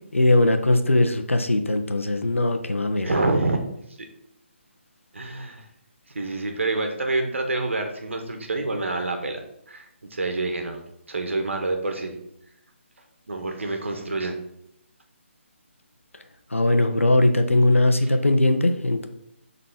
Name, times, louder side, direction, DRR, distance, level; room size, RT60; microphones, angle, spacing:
voice 1, 0.1-3.1 16.5-19.1, left 2 dB, 90° left, 7 dB, 1.0 m, -20 dB
voice 2, 3.0-3.6 5.1-5.7 6.1-9.4 9.7-12.2 13.3-14.4 18.1-18.2, right 2 dB, 75° right, 4 dB, 1.7 m, -27 dB
7.4 x 4.1 x 5.7 m, 0.79 s
figure-of-eight pair, 150°, 7 cm